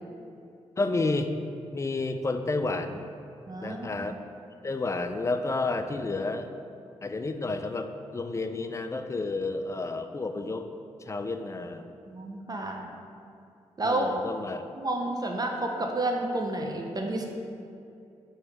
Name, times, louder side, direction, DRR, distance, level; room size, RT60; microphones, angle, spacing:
voice 1, 0.8-1.3 1.7-3.1 3.6-4.2 4.6-6.5 7.0-10.7 11.1-11.8 13.8-14.6, left 3 dB, 25° left, 8 dB, 0.3 m, -30 dB
voice 2, 3.5-4.1 12.1-12.9 13.8-14.1 14.8-17.3, right 2 dB, 30° right, 1 dB, 0.6 m, -30 dB
3.2 x 3.1 x 4.7 m, 2.5 s
supercardioid pair, 45°, 13 cm